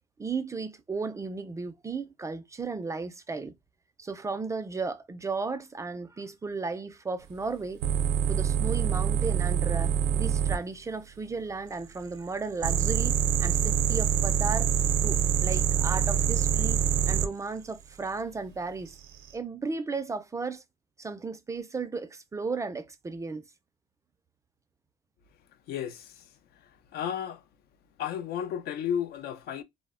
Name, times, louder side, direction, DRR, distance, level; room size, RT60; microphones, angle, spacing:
voice 1, 0.2-3.5 4.0-7.8 8.3-14.7 15.0-16.8 17.1-18.9 19.3-20.6 21.0-23.4, right 4 dB, 20° right, 0.3 m, -35 dB
sound 1, 7.8-10.6 12.6-17.3 18.9-19.3, right 9 dB, 85° right, 0.5 m, -25 dB
voice 2, 25.7-26.1 26.9-27.4 28.0-29.6, left 9 dB, 70° left, 0.4 m, -32 dB
2.0 x 2.0 x 3.5 m
cardioid pair, 110°, 17 cm